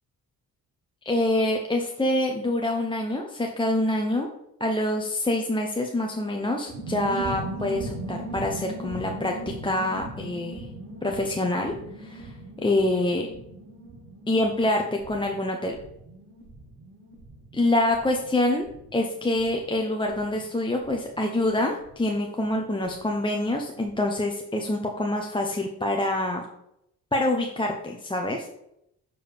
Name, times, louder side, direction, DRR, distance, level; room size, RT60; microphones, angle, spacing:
voice 1, 1.0-4.3 4.6-9.3 9.6-10.7 11.0-11.7 12.0-12.3 12.6-13.3 14.3-15.7 17.5-18.6 18.9-26.5 27.1-28.6, left 1 dB, 15° left, 1 dB, 0.7 m, -26 dB
sound 1, 6.7-23.0 23.2-23.3 23.5-23.9, right 2 dB, 75° right, 1.6 m, -39 dB
6.7 x 4.6 x 3.4 m, 0.80 s
cardioid pair, 70°, 38 cm